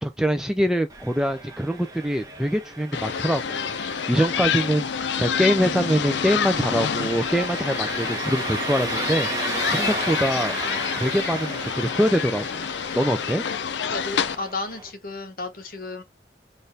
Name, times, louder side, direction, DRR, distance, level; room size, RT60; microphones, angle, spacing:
voice 1, 0.0-3.7 4.1-4.9 5.2-10.6 11.0-12.7 12.9-13.4, equal, 5° right, 0.3 m, -24 dB
Engine, 0.9-14.9, right 2 dB, 20° right, 0.9 m, -35 dB
sound 1, 2.9-14.4, left 7 dB, 75° left, 0.4 m, -28 dB
voice 2, 13.9-16.0, left 3 dB, 50° left, 1.0 m, -33 dB
4.3 x 2.5 x 3.2 m
head